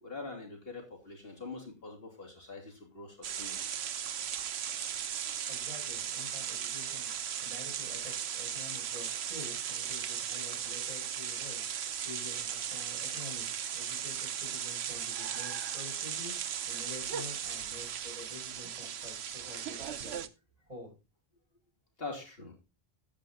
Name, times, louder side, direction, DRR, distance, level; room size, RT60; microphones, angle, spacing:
voice 1, 0.0-3.7 22.0-22.5, left 3 dB, 70° left, 1 dB, 3.0 m, -44 dB
sound 1, 3.2-20.3, right 9 dB, 90° right, 1.0 m, -37 dB
voice 2, 5.2-7.1 7.4-11.6 12.0-16.3 16.6-20.2 20.6-21.0, left 2 dB, 35° right, -1 dB, 5.2 m, -48 dB
10.5 x 7.8 x 4.0 m, 0.28 s
omnidirectional pair, 1.0 m